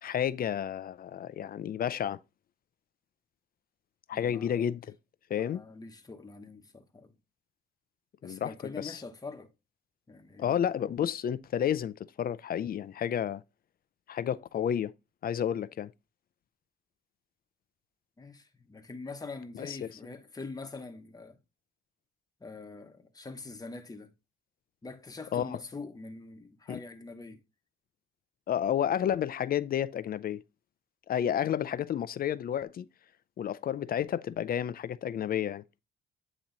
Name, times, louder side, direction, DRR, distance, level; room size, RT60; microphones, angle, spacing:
voice 1, 0.0-2.2 4.1-4.9 5.3-5.6 8.2-9.0 10.4-13.4 14.1-14.9 15.2-15.9 19.6-19.9 25.3-25.6 26.7-26.8 28.5-30.4 31.1-32.9 33.4-35.6, left 9 dB, 50° left, 0.5 m, -31 dB
voice 2, 4.1-4.5 5.3-7.2 8.2-9.5 10.1-10.7 18.2-21.4 22.4-24.1 24.8-27.4, left 3 dB, 20° left, 1.0 m, -44 dB
8.7 x 3.0 x 3.9 m
cardioid pair, 90°, 20 cm